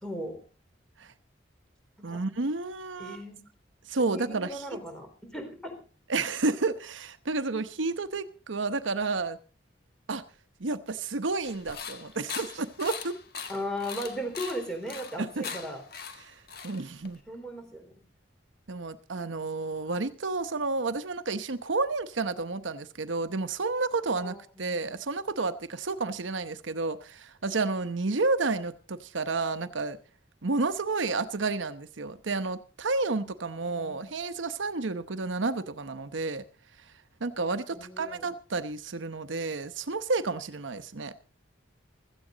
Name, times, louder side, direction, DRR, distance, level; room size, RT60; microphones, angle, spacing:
voice 1, 0.0-0.4 2.0-2.2 3.0-3.4 4.0-5.1 5.3-5.8 7.4-7.5 13.5-15.8 17.3-17.9 24.2-24.8 33.7-34.1 37.7-38.3, equal, 5° left, 3 dB, 4.2 m, -37 dB
voice 2, 2.0-3.2 3.9-4.8 6.1-9.4 10.1-10.2 10.6-13.1 15.2-15.5 16.2-16.3 16.6-17.2 18.7-30.0 30.4-36.4 37.2-41.1, right 3 dB, 85° right, 11 dB, 0.9 m, -31 dB
sound 1, 11.4-17.2, left 6 dB, 55° left, 1.7 m, -41 dB
16.5 x 14.5 x 4.0 m, 0.35 s
head